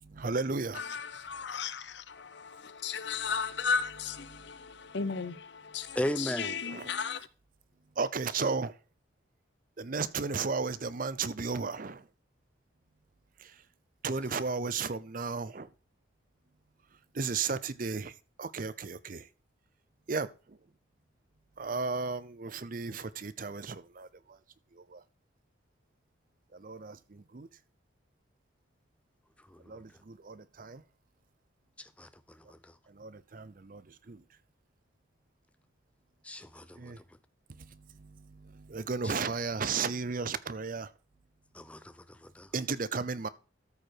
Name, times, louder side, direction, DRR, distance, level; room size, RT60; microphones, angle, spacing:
voice 1, 0.0-0.8 4.3-4.4 6.7-6.9 8.0-8.7 9.8-12.0 13.4-13.5 14.0-15.7 17.1-19.3 20.1-20.3 21.6-24.4 24.8-25.0 26.5-27.5 29.7-30.8 32.9-34.2 36.8-37.0 37.5-40.9 42.5-43.3, right 4 dB, 45° right, 0.6 m, -34 dB
voice 2, 0.7-7.3, left 5 dB, 60° left, 0.7 m, -35 dB
voice 3, 6.0-6.7 29.5-29.6 32.0-32.1 36.2-36.8 39.0-39.1 41.5-42.5, left 1 dB, 5° left, 0.5 m, -35 dB
13.5 x 4.8 x 4.6 m
head